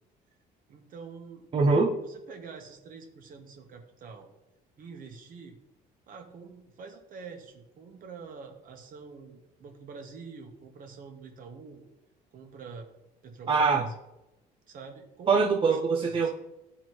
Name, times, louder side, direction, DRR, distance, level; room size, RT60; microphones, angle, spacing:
voice 1, 0.7-1.5 2.0-4.3 4.8-5.6 6.1-11.8 12.3-12.9 13.2-13.9 14.7-16.3, right 5 dB, 55° right, 4 dB, 1.2 m, -46 dB
voice 2, 1.5-2.0 13.5-13.9 15.3-16.3, right 4 dB, 30° right, 1 dB, 0.5 m, -23 dB
10.5 x 3.9 x 3.1 m, 0.93 s
cardioid pair, 110°, 17 cm